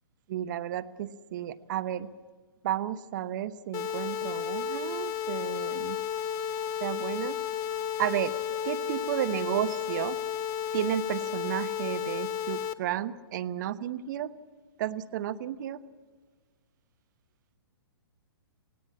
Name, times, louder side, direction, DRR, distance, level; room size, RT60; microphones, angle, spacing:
voice 1, 0.3-2.1 2.6-6.0 6.8-7.4 8.0-8.3 8.6-10.2 10.7-14.3 14.8-15.8, right 11 dB, 45° right, 14 dB, 1.0 m, -32 dB
sound 1, 3.7-12.7, left 9 dB, 25° left, 0.9 m, -33 dB
sound 2, 4.0-9.3, left 2 dB, 65° left, 6.6 m, -46 dB
18.0 x 17.5 x 8.4 m, 1.4 s
hypercardioid pair, 130°, 13 cm